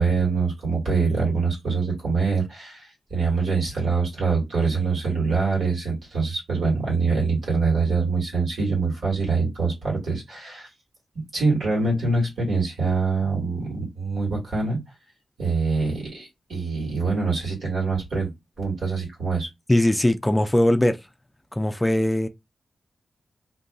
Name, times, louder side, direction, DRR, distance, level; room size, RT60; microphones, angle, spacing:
voice 1, 0.0-10.7 11.3-14.8 15.4-18.3 18.6-19.5, right 4 dB, 85° right, 1.7 m, -24 dB
voice 2, 19.7-21.0 21.5-22.3, left 1 dB, 15° left, 0.3 m, -20 dB
2.7 x 2.5 x 2.3 m
cardioid pair, 55°, 0 cm